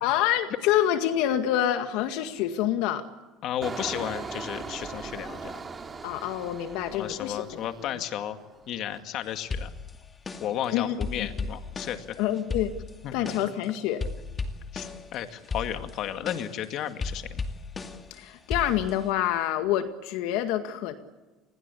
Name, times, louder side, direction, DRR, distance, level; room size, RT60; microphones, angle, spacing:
voice 1, 0.0-3.1 6.0-7.6 7.9-8.0 10.7-11.3 12.2-12.7 13.1-14.1 18.1-21.0, left 11 dB, 75° left, 8 dB, 2.0 m, -27 dB
voice 2, 3.4-5.6 6.9-8.4 8.7-9.7 10.4-12.2 13.0-13.4 14.7-17.4, left 10 dB, 55° left, 8 dB, 2.1 m, -33 dB
Engine, 3.6-8.3 8.6-9.0, right 4 dB, 25° right, 2.7 m, -39 dB
sound 1, 9.5-10.6 11.0-13.6 14.0-15.2 15.4-18.2 18.5-19.1, left 4 dB, 25° left, 2.3 m, -35 dB
29.5 x 21.0 x 8.4 m, 1.2 s
supercardioid pair, 115°, 0 cm